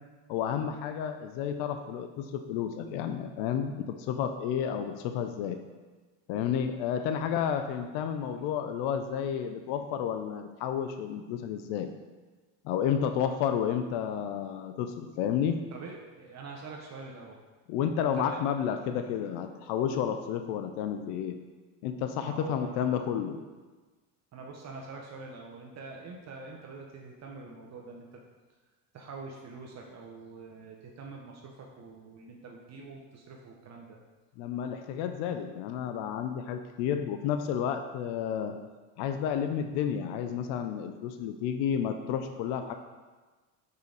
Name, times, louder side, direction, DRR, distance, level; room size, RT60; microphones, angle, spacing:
voice 1, 0.3-5.6 6.3-11.9 12.6-15.6 17.7-21.3 21.8-23.4 34.4-38.6 39.0-42.7, left 8 dB, 80° left, 7 dB, 0.6 m, -31 dB
voice 2, 15.7-17.4 18.0-18.4 22.2-23.0 24.3-28.2 28.9-34.0, right 3 dB, 45° right, 0 dB, 0.8 m, -45 dB
5.5 x 5.0 x 3.9 m, 1.3 s
cardioid pair, 115°, 39 cm